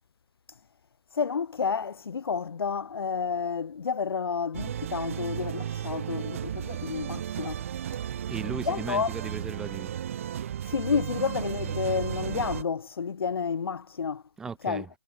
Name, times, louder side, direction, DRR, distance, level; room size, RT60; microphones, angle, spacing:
voice 1, 1.1-7.6 8.7-9.1 10.7-14.2 14.6-14.8, left 6 dB, 50° left, 1.4 m, -30 dB
sound 1, 4.5-12.6, right 10 dB, 25° right, 2.0 m, -34 dB
voice 2, 8.3-9.9 14.4-14.9, right 5 dB, 5° right, 2.7 m, -36 dB
hypercardioid pair, 175°, 16 cm